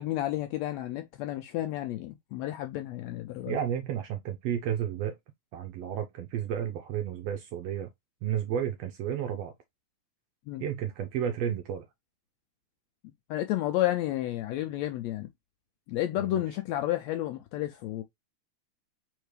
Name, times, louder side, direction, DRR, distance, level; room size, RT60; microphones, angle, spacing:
voice 1, 0.0-3.6 10.5-10.6 13.3-15.3 15.9-18.0, left 14 dB, 80° left, 1.6 m, -31 dB
voice 2, 3.5-5.2 5.5-7.9 8.2-9.5 10.6-11.9 16.2-16.4, right 9 dB, 75° right, 1.5 m, -32 dB
4.5 x 3.6 x 3.2 m
omnidirectional pair, 3.5 m